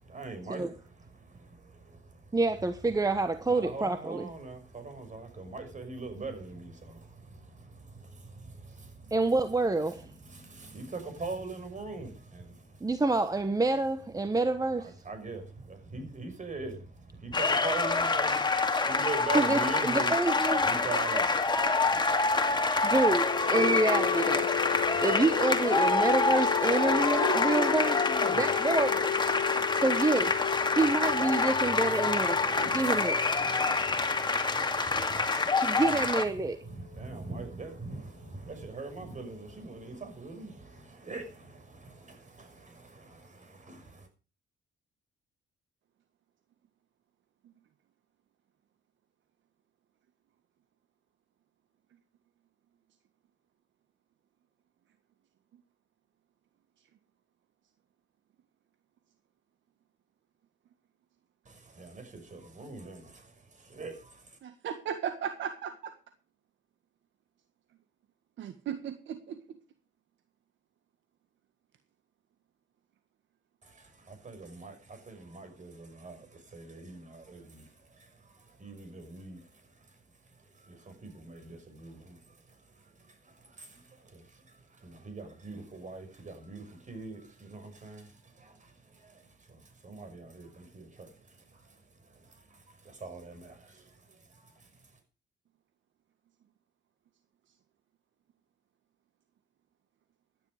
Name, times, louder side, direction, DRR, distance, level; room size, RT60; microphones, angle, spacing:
voice 1, 0.1-2.4 3.4-9.2 9.8-12.9 14.8-20.1 20.6-22.9 24.6-25.2 27.1-28.9 29.4-29.8 30.7-30.8 31.4-31.5 31.8-36.0 36.7-44.1 61.4-64.4 73.6-80.0 80.5-94.9, right 3 dB, 40° right, 6.1 m, -43 dB
voice 2, 2.3-4.3 9.1-10.1 12.8-14.9 19.3-20.7 22.8-24.5 25.0-28.0 28.3-29.1 29.7-30.3 30.8-33.2 35.2-36.6, right 3 dB, 20° right, 1.1 m, -28 dB
sound 1, 17.3-36.2, left 3 dB, 20° left, 2.4 m, -27 dB
sound 2, 23.1-36.9, left 10 dB, 65° left, 1.1 m, -34 dB
voice 3, 64.4-65.9 68.4-69.4, right 8 dB, 70° right, 1.7 m, -36 dB
16.0 x 10.5 x 5.0 m
cardioid pair, 90°, 20 cm